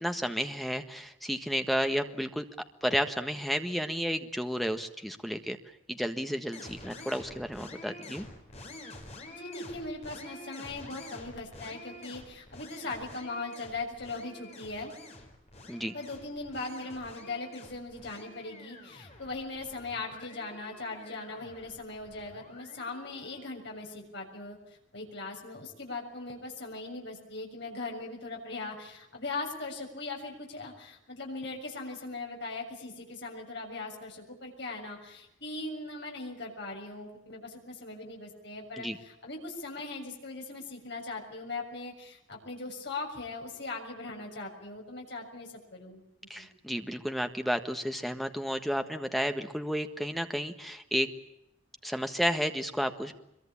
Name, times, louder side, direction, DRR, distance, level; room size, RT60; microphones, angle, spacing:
voice 1, 0.0-2.4 2.8-5.6 5.9-8.2 15.7-15.9 38.8-39.0 46.3-51.1 51.8-53.1, equal, ahead, 7 dB, 1.5 m, -32 dB
sound 1, 6.5-23.5, left 2 dB, 35° left, 4.8 m, -49 dB
voice 2, 9.3-14.9 15.9-24.6 24.9-46.0 46.4-46.5, left 3 dB, 60° left, 0 dB, 6.8 m, -39 dB
25.0 x 23.0 x 8.7 m, 0.82 s
head